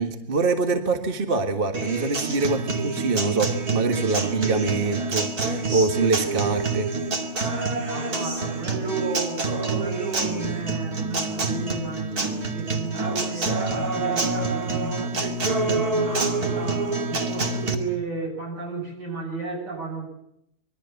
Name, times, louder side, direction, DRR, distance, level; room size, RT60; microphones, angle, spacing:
voice 1, 0.0-6.9, right 4 dB, 30° right, 5 dB, 1.8 m, -24 dB
Acoustic guitar, 1.7-17.7, right 3 dB, 60° right, 3.0 m, -27 dB
voice 2, 7.9-20.1, right 4 dB, 75° right, 1 dB, 8.6 m, -33 dB
25.5 x 22.0 x 7.1 m, 0.78 s
omnidirectional pair, 1.9 m